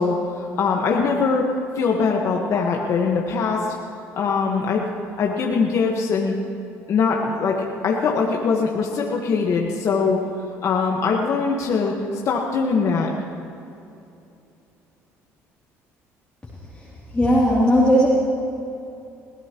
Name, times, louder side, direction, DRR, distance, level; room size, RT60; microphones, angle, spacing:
voice 1, 0.0-1.5 1.7-3.7 4.1-4.9 5.2-6.4 6.9-10.2 10.6-12.0 12.2-13.1, left 5 dB, 55° left, -1 dB, 1.4 m, -22 dB
voice 2, 17.1-18.1, equal, 15° left, -8 dB, 2.9 m, -16 dB
21.5 x 15.5 x 3.0 m, 2.8 s
supercardioid pair, 80°, 6 cm